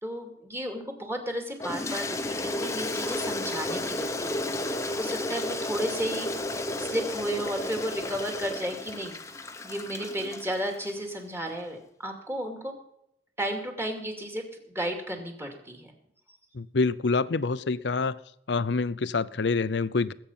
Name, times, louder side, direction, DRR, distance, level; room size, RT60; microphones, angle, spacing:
voice 1, 0.0-9.1 9.6-12.7 13.4-15.9, equal, 15° right, 3 dB, 2.5 m, -33 dB
Toilet flush, 1.6-11.0, left 2 dB, 15° left, 0.9 m, -33 dB
voice 2, 16.5-18.2 18.5-20.1, left 4 dB, 65° left, 16 dB, 0.6 m, -26 dB
20.5 x 8.7 x 5.5 m, 0.77 s
head